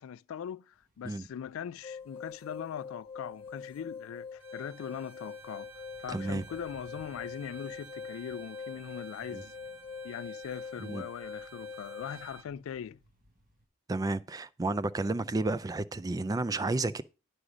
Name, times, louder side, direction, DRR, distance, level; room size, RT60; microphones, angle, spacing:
voice 1, 0.0-5.7 6.0-9.5 10.0-13.0, left 8 dB, 85° left, 0.3 m, -41 dB
sound 1, 0.7-13.7, equal, 45° right, 1.6 m, -64 dB
sound 2, 1.8-12.3, left 5 dB, 25° left, 1.1 m, -44 dB
Bowed string instrument, 4.4-12.5, right 6 dB, 70° right, 0.9 m, -52 dB
voice 2, 6.1-6.4 9.3-9.4 10.8-11.1 13.9-17.0, right 2 dB, 20° right, 0.3 m, -31 dB
9.9 x 5.0 x 5.0 m
head